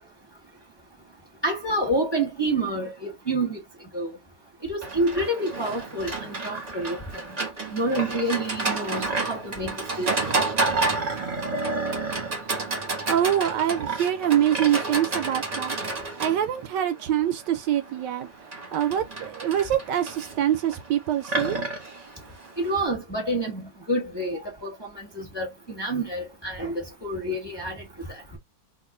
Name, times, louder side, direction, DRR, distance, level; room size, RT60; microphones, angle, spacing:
voice 1, 1.4-3.6 3.9-4.2 4.7-7.2 7.7-10.3 22.6-28.4, right 1 dB, 15° left, 0.9 m, -28 dB
Livestock farm animals working animals, 4.8-22.8, right 3 dB, 30° right, 0.8 m, -30 dB
voice 2, 13.1-15.8 16.2-18.3 18.7-21.6, right 10 dB, 75° right, 1.1 m, -24 dB
3.0 x 2.5 x 3.7 m
omnidirectional pair, 2.0 m